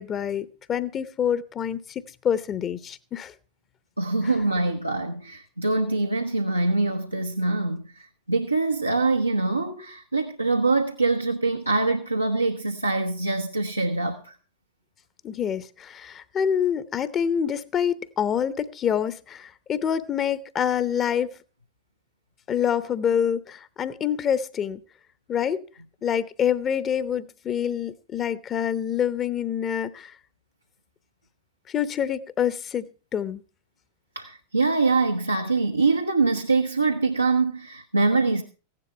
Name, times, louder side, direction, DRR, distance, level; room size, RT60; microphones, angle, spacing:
voice 1, 0.0-3.3 15.2-21.3 22.5-24.8 25.3-25.6 26.0-30.1 31.7-33.4, left 8 dB, 25° left, 0.8 m, -26 dB
voice 2, 4.0-14.3 34.1-38.4, right 3 dB, 85° right, 1.0 m, -24 dB
15.5 x 10.5 x 4.5 m
figure-of-eight pair, 90°, 0 cm